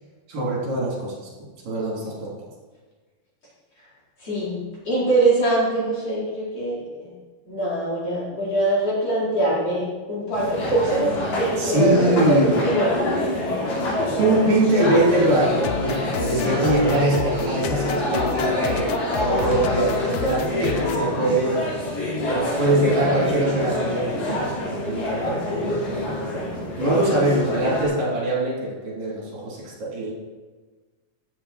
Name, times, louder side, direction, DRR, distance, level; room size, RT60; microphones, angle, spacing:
voice 1, 0.3-1.1 1.6-2.3 11.6-12.6 14.2-18.9 19.2-21.9 22.3-26.2 26.8-30.1, right 1 dB, 70° right, -5 dB, 5.4 m, -23 dB
voice 2, 4.2-4.6 4.8-7.1 7.5-14.1 16.4-16.7 22.7-23.3 27.1-27.2, right 2 dB, 40° left, -8 dB, 5.4 m, -24 dB
sound 1, 10.3-27.8, left 1 dB, 65° left, 5.2 m, -26 dB
sound 2, 15.6-21.0, left 8 dB, 80° left, 1.7 m, -31 dB
16.0 x 8.2 x 4.5 m, 1.3 s
omnidirectional pair, 4.2 m